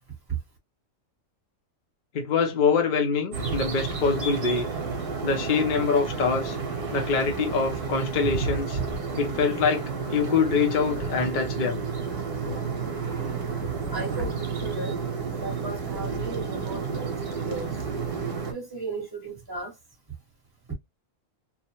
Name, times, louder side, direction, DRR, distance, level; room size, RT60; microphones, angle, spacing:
voice 1, 2.1-4.7 5.2-6.6 6.9-8.8 9.2-11.8, left 5 dB, 45° left, 0.7 m, -24 dB
sound 1, 3.3-18.5, right 5 dB, 50° right, 1.0 m, -31 dB
voice 2, 13.9-15.1 15.4-17.7 18.4-19.7 20.7-20.8, right 3 dB, 20° right, 1.1 m, -35 dB
2.9 x 2.1 x 2.8 m
omnidirectional pair, 1.4 m